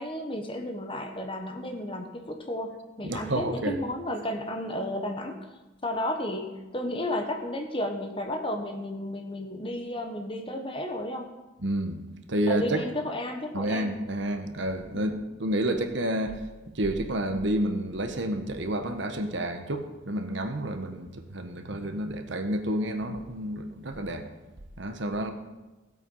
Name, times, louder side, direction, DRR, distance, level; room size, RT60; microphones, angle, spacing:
voice 1, 0.0-5.4 5.8-11.3 12.5-13.9 14.9-15.1, left 1 dB, 25° left, 4 dB, 1.2 m, -33 dB
voice 2, 3.0-3.8 11.6-12.8 13.5-24.3 24.8-25.3, right 1 dB, 60° right, 7 dB, 1.1 m, -30 dB
16.0 x 8.1 x 5.5 m, 1.1 s
head